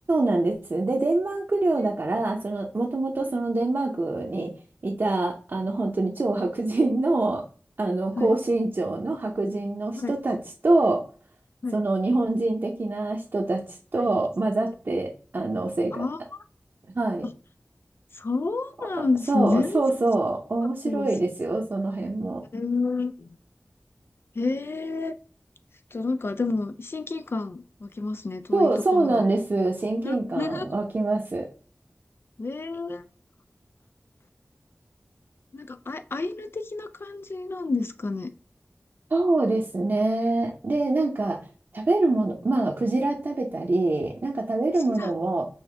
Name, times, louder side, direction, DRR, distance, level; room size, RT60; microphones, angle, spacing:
voice 1, 0.1-4.5 4.8-7.4 7.8-11.0 11.7-13.6 13.9-16.0 16.9-17.3 19.0-22.4 28.5-31.5 39.1-41.4 41.7-45.5, right 2 dB, 60° right, -1 dB, 0.8 m, -25 dB
voice 2, 1.8-2.1 8.2-8.3 10.0-10.1 11.6-11.8 14.0-14.1 15.9-16.2 18.1-19.8 20.6-21.1 22.5-23.4 24.4-25.1 25.9-29.2 30.0-30.7 32.4-33.1 35.5-38.3 45.0-45.1, left 3 dB, 65° left, 9 dB, 0.5 m, -29 dB
5.6 x 2.8 x 3.3 m, 0.38 s
wide cardioid pair, 70°, 4 cm